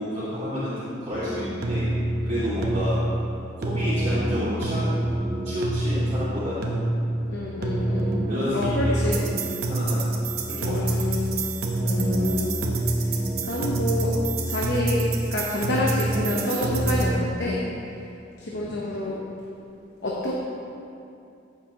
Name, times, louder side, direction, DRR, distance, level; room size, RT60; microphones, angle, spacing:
voice 1, 0.0-1.9 2.2-3.0 3.6-4.9 5.4-6.8 8.3-9.4 9.7-10.0 10.5-10.9 18.5-18.7, equal, 35° right, -13 dB, 2.1 m, -30 dB
sound 1, 1.1-17.1, right 1 dB, 50° right, 0.9 m, -26 dB
voice 2, 7.3-8.2 8.5-9.2 10.6-11.4 11.8-12.5 13.4-14.1 14.5-17.6 18.4-19.1 20.0-20.3, left 2 dB, 60° left, -4 dB, 1.0 m, -28 dB
14.0 x 6.8 x 2.9 m, 2.6 s
head